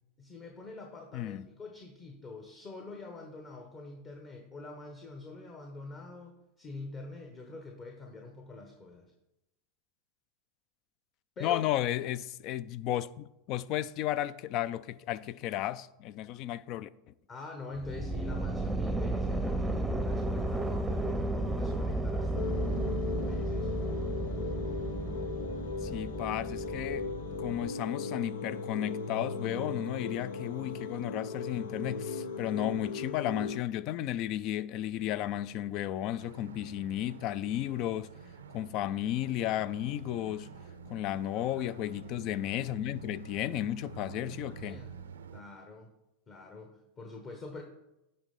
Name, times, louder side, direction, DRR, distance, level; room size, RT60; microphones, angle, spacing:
voice 1, 0.2-9.1 11.4-11.6 17.3-22.9 23.2-23.7 41.3-41.7 43.9-44.9 45.3-45.9 46.3-47.6, left 3 dB, 35° left, 1.2 m, -46 dB
voice 2, 1.1-1.5 11.4-16.9 25.8-27.1 27.4-38.1 38.5-40.5 40.9-44.8, left 12 dB, 50° left, 0.4 m, -33 dB
sound 1, 17.8-27.7, right 2 dB, 5° right, 0.7 m, -33 dB
sound 2, 22.3-33.6, left 4 dB, 90° left, 0.8 m, -37 dB
sound 3, 36.2-45.4, right 6 dB, 90° right, 0.5 m, -48 dB
9.6 x 3.3 x 5.3 m
hypercardioid pair, 100°, 0 cm